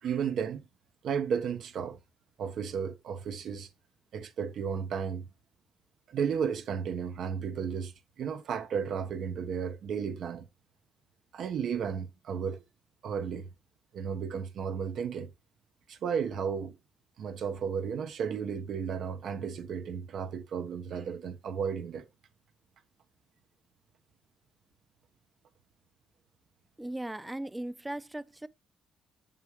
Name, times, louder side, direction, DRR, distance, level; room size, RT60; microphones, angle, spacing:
voice 1, 0.0-0.7 1.0-2.0 2.4-3.7 4.1-5.3 6.1-10.5 11.3-12.6 13.0-13.5 13.9-15.3 15.9-16.8 17.2-22.1, right 7 dB, 70° right, 1.2 m, -33 dB
voice 2, 26.8-28.5, right 1 dB, 10° right, 0.6 m, -38 dB
7.3 x 7.3 x 3.2 m
cardioid pair, 90°, 0 cm